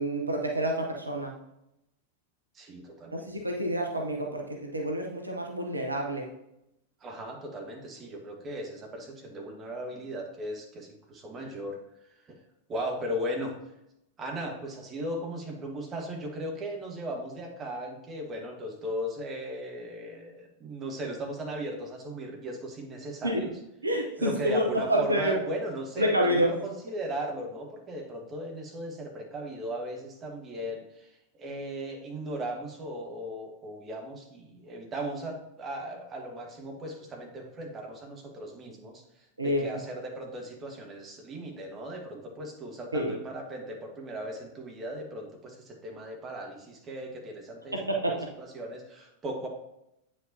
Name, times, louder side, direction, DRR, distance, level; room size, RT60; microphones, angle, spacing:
voice 1, 0.0-1.3 3.1-6.3 23.2-23.4 23.8-25.4 26.0-26.5 39.4-39.6 42.9-43.1 47.7-48.2, equal, 80° right, 1 dB, 0.8 m, -28 dB
voice 2, 2.5-3.3 7.0-11.8 12.3-12.4 12.7-13.5 14.2-23.6 24.2-26.4 26.6-39.0 39.4-49.5, right 1 dB, 25° right, 1 dB, 1.5 m, -37 dB
8.4 x 5.1 x 2.8 m, 0.83 s
figure-of-eight pair, 90°, 0 cm